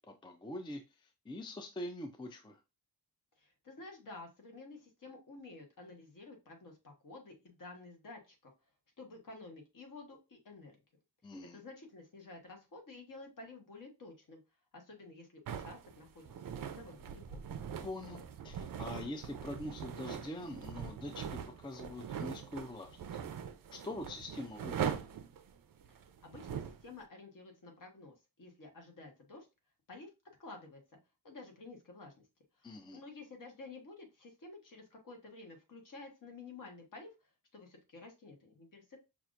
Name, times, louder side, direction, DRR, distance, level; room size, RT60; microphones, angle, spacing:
voice 1, 0.0-2.6 11.2-11.6 17.8-23.0 23.7-25.0 32.6-33.0, left 1 dB, 15° left, 6 dB, 0.3 m, -44 dB
voice 2, 3.4-8.5 9.0-10.8 11.5-14.4 14.7-16.3 16.7-17.4 25.9-29.5 29.9-30.1 30.4-30.8 31.2-32.2 32.5-39.0, left 3 dB, 50° left, 2 dB, 1.3 m, -52 dB
sound 1, 15.5-26.8, right 8 dB, 55° right, 0.5 m, -42 dB
5.7 x 2.5 x 2.5 m, 0.26 s
wide cardioid pair, 155°, 40 cm